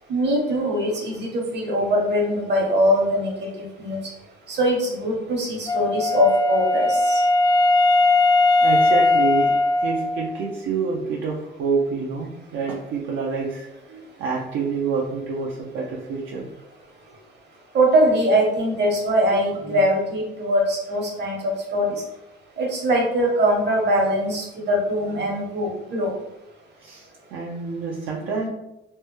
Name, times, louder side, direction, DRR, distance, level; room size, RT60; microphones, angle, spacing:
voice 1, 0.1-4.0 4.5-7.2 17.7-22.0 22.6-26.1, equal, 60° right, -1 dB, 1.1 m, -22 dB
Wind instrument woodwind instrument, 5.7-10.5, left 2 dB, 20° left, 0.3 m, -19 dB
voice 2, 8.6-9.5 9.8-16.5 26.8-28.5, right 5 dB, 80° right, -3 dB, 0.6 m, -27 dB
3.2 x 2.2 x 3.1 m, 0.91 s
cardioid pair, 90°, 20 cm